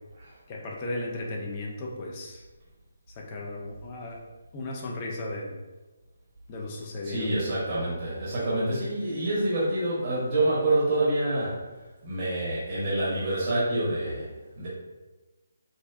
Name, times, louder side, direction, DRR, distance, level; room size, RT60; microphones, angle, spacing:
voice 1, 0.5-2.4 3.1-4.2 4.5-5.6 6.5-7.3, left 2 dB, 25° left, -1 dB, 0.4 m, -35 dB
voice 2, 7.0-11.6 12.0-14.3 14.6-14.7, right 1 dB, 30° right, -8 dB, 0.7 m, -27 dB
2.5 x 2.1 x 2.3 m, 1.2 s
figure-of-eight pair, 145°, 0 cm